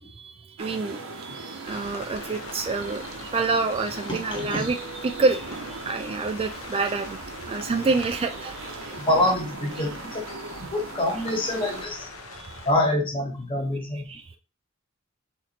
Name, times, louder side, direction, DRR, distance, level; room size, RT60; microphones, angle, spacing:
voice 1, 0.1-4.8 5.0-7.2 7.5-8.6 12.3-12.6 14.1-14.4, right 3 dB, 25° right, 7 dB, 0.3 m, -28 dB
sound 1, 0.6-11.9, right 3 dB, 75° right, 0.8 m, -39 dB
sound 2, 1.6-12.7, left 2 dB, 80° left, 0.9 m, -42 dB
voice 2, 4.1-4.7 8.9-12.1 12.6-14.1, left 1 dB, 25° left, 1 dB, 1.3 m, -26 dB
4.2 x 3.0 x 4.1 m, 0.33 s
head